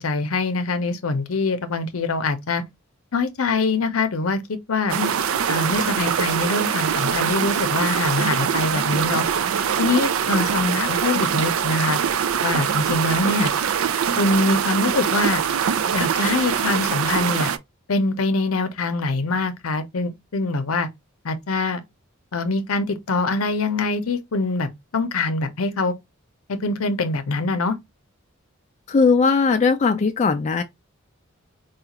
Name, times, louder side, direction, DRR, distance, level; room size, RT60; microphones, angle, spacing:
voice 1, 0.0-2.6 3.1-5.0 5.5-9.2 9.8-12.0 12.4-13.5 14.2-15.4 15.9-17.5 17.9-20.9 21.2-21.8 22.3-25.9 26.5-27.8, left 3 dB, 90° left, 0.7 m, -24 dB
sound 1, 4.9-17.6, right 8 dB, 80° right, 0.4 m, -23 dB
voice 2, 10.4-10.8 28.9-30.6, left 4 dB, 35° left, 0.3 m, -19 dB
4.6 x 2.4 x 2.9 m
head